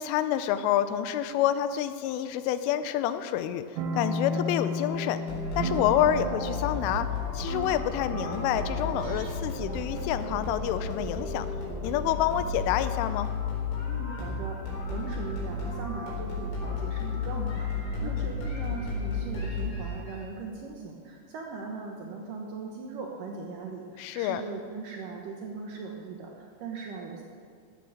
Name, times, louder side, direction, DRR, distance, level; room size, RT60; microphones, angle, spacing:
voice 1, 0.0-5.2 5.6-7.1 7.3-11.5 11.8-13.3 18.0-18.1 24.0-24.4, left 11 dB, 85° left, 12 dB, 3.2 m, -28 dB
sound 1, 3.7-9.7, equal, 70° right, 2.9 m, -34 dB
sound 2, 5.3-20.2, left 3 dB, 70° left, 6.2 m, -33 dB
voice 2, 13.9-27.2, right 4 dB, 90° right, 0 dB, 1.8 m, -39 dB
15.5 x 13.0 x 5.0 m, 2.1 s
omnidirectional pair, 5.6 m